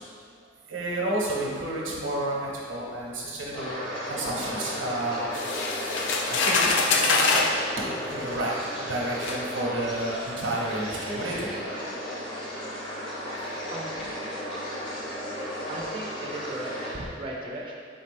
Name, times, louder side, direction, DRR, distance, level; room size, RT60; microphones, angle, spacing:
voice 1, 0.7-3.8 4.1-5.7 6.3-6.7 7.0-7.4 7.8-11.5 13.4-13.6, right 1 dB, 90° right, -3 dB, 0.8 m, -31 dB
sound 1, 3.5-16.9, equal, 25° left, 0.7 m, -34 dB
sound 2, 5.3-7.6 8.5-8.6 9.2-9.4, left 4 dB, 65° left, 0.4 m, -24 dB
voice 2, 13.7-14.4 15.7-17.7, right 1 dB, 25° right, -3 dB, 0.4 m, -37 dB
4.1 x 3.7 x 2.5 m, 2.2 s
head